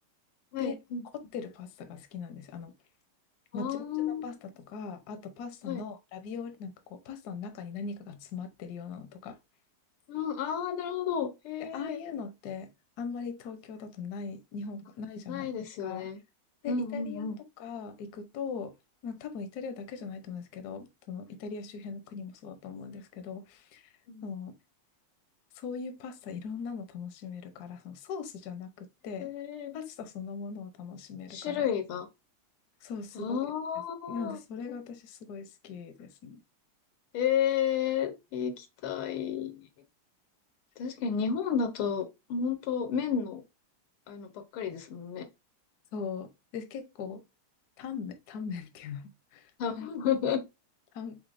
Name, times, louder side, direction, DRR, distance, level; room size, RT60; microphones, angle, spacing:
voice 1, 0.5-1.0 3.5-4.2 5.6-5.8 10.1-12.0 15.3-16.2 16.7-17.4 24.1-24.3 29.2-29.8 31.3-32.1 33.2-34.4 37.1-39.7 40.8-43.4 44.1-45.3 49.6-50.4, left 7 dB, 85° left, 1.8 m, -32 dB
voice 2, 1.3-2.7 3.5-9.4 11.6-12.7 13.0-15.5 15.8-16.1 16.6-18.7 19.0-23.9 24.2-24.5 25.5-29.3 29.7-31.7 32.8-33.5 34.1-36.4 45.9-47.2 47.8-49.5 49.8-49.9 50.9-51.2, left 5 dB, 60° left, 1.1 m, -40 dB
5.0 x 3.9 x 2.5 m
omnidirectional pair, 2.3 m